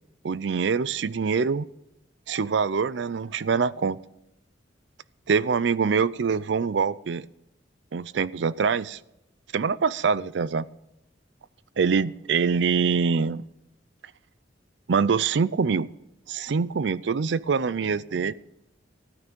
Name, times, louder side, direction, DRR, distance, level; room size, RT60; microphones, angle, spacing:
voice 1, 0.2-1.7 2.3-4.0 5.3-7.3 7.9-9.0 9.5-10.7 11.8-13.4 14.9-15.9 16.3-18.3, right 5 dB, 65° right, 19 dB, 0.5 m, -24 dB
14.0 x 9.6 x 5.3 m, 0.88 s
head